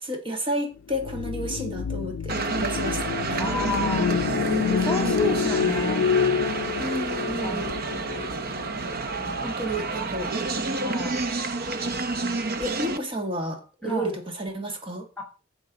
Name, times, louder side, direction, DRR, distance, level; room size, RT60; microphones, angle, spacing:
voice 1, 0.0-3.4 6.8-7.7 9.4-10.3 12.6-15.1, equal, 25° right, 4 dB, 1.8 m, -31 dB
sound 1, 0.9-9.3, left 6 dB, 85° left, 0.4 m, -28 dB
sound 2, 2.3-13.0, right 3 dB, 50° right, 0.8 m, -29 dB
voice 2, 3.4-4.1 4.6-6.1 7.1-7.9 9.2-10.2 10.8-11.2 13.8-14.2 15.2-15.3, left 1 dB, 5° left, 0 dB, 2.1 m, -32 dB
10.5 x 7.0 x 3.9 m, 0.33 s
head